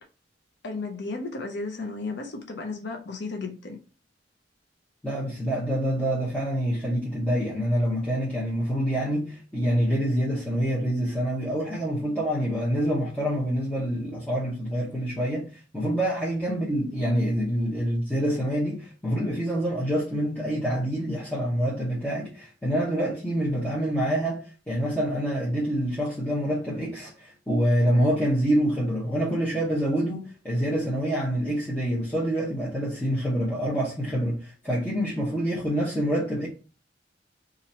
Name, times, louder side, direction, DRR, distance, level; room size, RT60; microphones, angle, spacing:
voice 1, 0.6-3.8 16.5-16.8, left 3 dB, 65° left, 0.6 m, -34 dB
voice 2, 5.0-15.4 15.7-36.5, equal, 10° left, 0.9 m, -26 dB
2.9 x 2.5 x 4.2 m
head